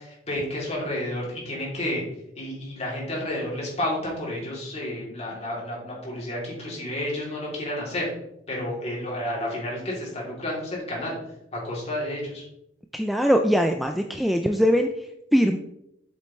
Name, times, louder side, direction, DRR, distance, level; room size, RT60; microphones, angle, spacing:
voice 1, 0.0-2.0 2.4-8.1 8.5-11.2 11.5-12.4, left 1 dB, 35° left, -4 dB, 3.1 m, -31 dB
voice 2, 12.9-14.9 15.3-15.6, equal, ahead, 5 dB, 0.4 m, -21 dB
7.6 x 7.6 x 3.2 m, 0.80 s
head